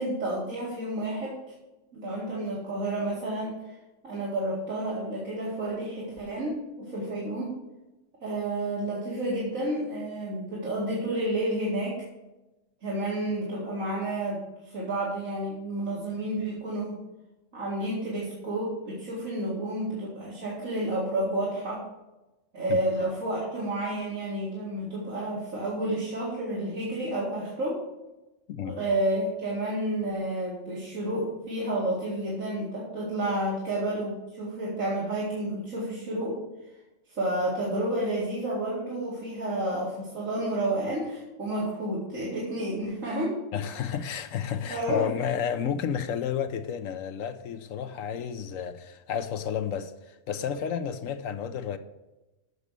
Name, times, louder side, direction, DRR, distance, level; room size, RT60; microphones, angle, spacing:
voice 1, 0.0-1.3 1.9-3.7 4.0-7.5 8.2-12.0 12.8-17.0 17.5-21.8 22.5-27.8 28.6-36.4 37.1-43.4 44.7-45.1, right 1 dB, 75° right, -6 dB, 2.6 m, -30 dB
voice 2, 28.5-28.8 43.5-51.8, left 8 dB, 75° left, 9 dB, 1.1 m, -31 dB
8.2 x 6.2 x 6.7 m, 1.0 s
omnidirectional pair, 1.4 m